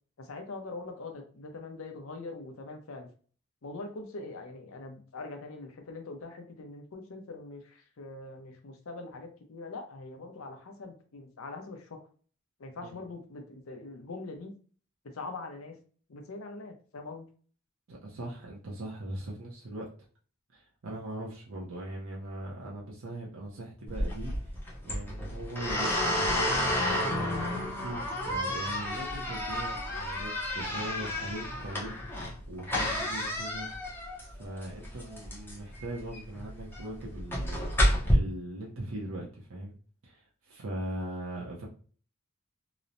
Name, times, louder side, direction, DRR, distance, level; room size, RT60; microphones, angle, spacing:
voice 1, 0.2-3.1 3.6-12.0 12.6-14.5 15.0-15.8 16.1-17.3, left 3 dB, 80° left, 5 dB, 0.6 m, -43 dB
voice 2, 17.9-19.9 20.5-24.6 24.8-33.7 34.3-39.7 40.0-41.7, right 1 dB, 80° right, -3 dB, 0.6 m, -40 dB
sound 1, 23.9-38.1, left 1 dB, 10° left, 0.5 m, -31 dB
3.0 x 2.0 x 2.5 m, 0.42 s
head